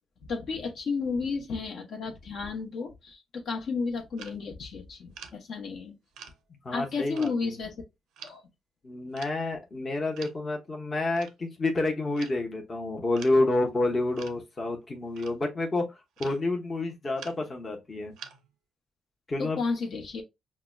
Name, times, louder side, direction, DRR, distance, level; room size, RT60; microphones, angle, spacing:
voice 1, 0.3-5.9 6.7-7.8 8.2-8.4 19.4-20.2, left 4 dB, 60° left, 1.0 m, -32 dB
sound 1, 4.2-4.4 5.1-5.4 6.1-6.4 7.2-7.3 8.2-8.4 9.1-9.4 10.1-10.4 11.2-11.3 12.2-12.4 13.1-13.4 14.1-14.4 15.1-15.5 16.2-16.4 17.1-17.6 18.1-18.5, right 7 dB, 85° right, 0.5 m, -46 dB
voice 2, 6.6-7.3 8.8-15.8 16.2-18.1 19.3-19.6, left 2 dB, 30° left, 0.8 m, -29 dB
5.6 x 2.1 x 2.3 m
cardioid pair, 90°, 0 cm